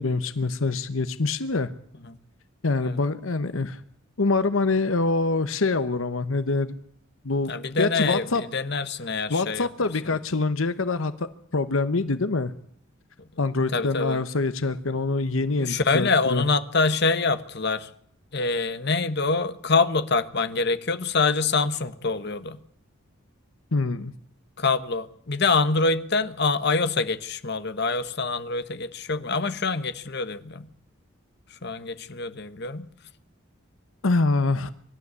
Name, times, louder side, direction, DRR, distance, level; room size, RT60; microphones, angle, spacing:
voice 1, 0.0-1.7 2.6-3.8 4.2-6.7 7.2-8.4 9.3-11.3 11.5-12.5 13.4-16.4 23.7-24.1 34.0-34.7, left 3 dB, 70° left, 1.0 m, -25 dB
voice 2, 7.5-10.2 13.7-14.2 15.6-17.9 18.3-22.6 24.6-30.7 31.6-32.9, left 4 dB, 50° left, 1.2 m, -25 dB
24.5 x 12.5 x 9.7 m
head